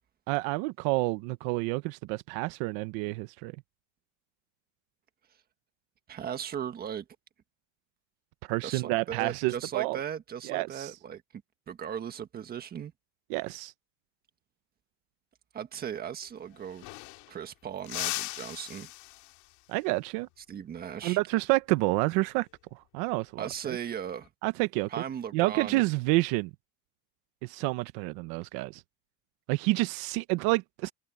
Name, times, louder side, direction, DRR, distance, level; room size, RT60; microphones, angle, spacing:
voice 1, 0.3-3.5 8.5-10.0 10.5-10.9 13.3-13.7 19.7-20.3 21.0-23.8 24.4-24.9 25.3-26.5 27.4-28.8 29.5-30.9, right 22 dB, 70° right, 0.9 m, -29 dB
voice 2, 6.1-7.0 8.6-12.9 15.5-16.8 17.3-18.9 20.5-21.2 23.4-24.3 24.9-25.8, right 8 dB, 25° right, 1.5 m, -37 dB
sound 1, 16.2-16.3 16.5-17.5 17.8-19.6 22.1-22.4 23.8-24.3, left 24 dB, 85° left, 2.6 m, -39 dB
cardioid pair, 180°, 37 cm